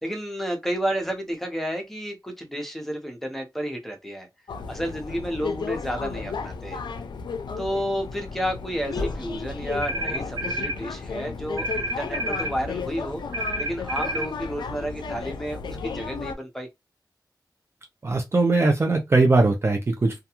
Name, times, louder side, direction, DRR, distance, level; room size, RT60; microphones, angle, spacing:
voice 1, 0.0-4.3 4.7-6.8 7.6-13.2 13.6-16.7, equal, 5° left, 0.7 m, -31 dB
sound 1, 4.5-16.4, left 5 dB, 90° left, 0.3 m, -34 dB
sound 2, 8.9-13.7, left 1 dB, 45° left, 0.7 m, -41 dB
sound 3, 9.8-10.8 11.6-12.6 13.3-14.3, right 1 dB, 80° right, 1.0 m, -29 dB
voice 2, 18.0-20.2, right 3 dB, 35° right, 0.4 m, -20 dB
2.3 x 2.2 x 2.9 m
wide cardioid pair, 115°, 7 cm